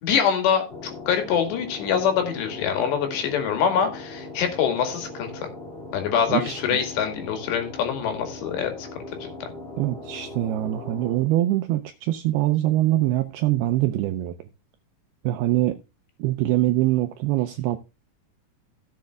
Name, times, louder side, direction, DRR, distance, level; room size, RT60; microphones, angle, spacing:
voice 1, 0.0-5.5 5.9-8.9 9.2-9.5, left 7 dB, 70° left, 4.1 m, -25 dB
sound 1, 0.7-11.2, left 2 dB, 20° left, 1.6 m, -39 dB
voice 2, 6.3-6.6 9.8-14.5 15.2-15.8 16.2-17.8, right 15 dB, 80° right, 2.3 m, -23 dB
16.5 x 7.5 x 2.3 m
omnidirectional pair, 5.2 m